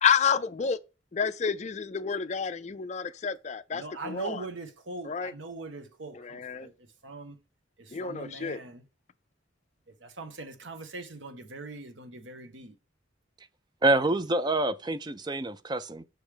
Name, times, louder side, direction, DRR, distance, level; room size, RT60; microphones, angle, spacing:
voice 1, 0.0-0.8 1.1-4.4 5.1-5.3 6.2-6.7 7.9-8.6, left 7 dB, 35° left, 0.4 m, -29 dB
voice 2, 3.7-7.4 7.8-8.8 9.9-12.8, right 3 dB, 80° right, 1.0 m, -42 dB
voice 3, 13.8-16.0, right 2 dB, 25° right, 0.4 m, -26 dB
6.3 x 3.3 x 4.9 m
head